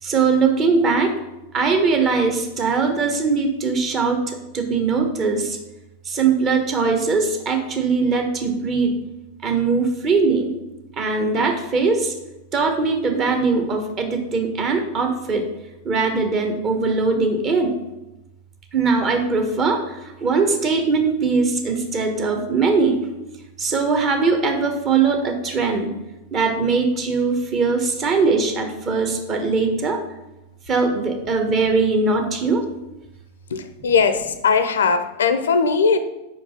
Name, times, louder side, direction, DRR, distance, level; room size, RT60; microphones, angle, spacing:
voice 1, 0.0-1.1 1.5-5.6 6.0-8.9 9.4-10.5 11.0-12.1 12.5-15.5 15.8-17.7 18.7-23.1 23.6-25.9 26.3-30.0 30.7-32.6, right 4 dB, 30° right, 4 dB, 1.1 m, -21 dB
voice 2, 33.5-36.0, left 5 dB, 65° left, 10 dB, 0.5 m, -19 dB
5.1 x 5.0 x 5.5 m, 0.96 s
figure-of-eight pair, 90°, 0 cm